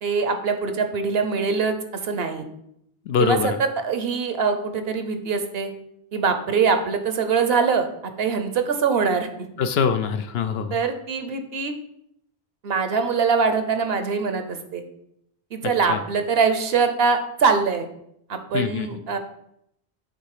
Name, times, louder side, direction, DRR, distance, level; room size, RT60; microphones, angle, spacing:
voice 1, 0.0-1.8 2.0-2.4 3.2-5.7 6.1-9.3 10.7-11.7 12.6-14.8 15.5-17.9 18.3-19.2, right 5 dB, 65° right, 8 dB, 1.0 m, -23 dB
voice 2, 3.1-3.6 9.6-10.7 15.9-16.0 18.5-18.9, left 6 dB, 70° left, 10 dB, 0.8 m, -23 dB
8.2 x 3.8 x 4.8 m, 0.75 s
omnidirectional pair, 1.1 m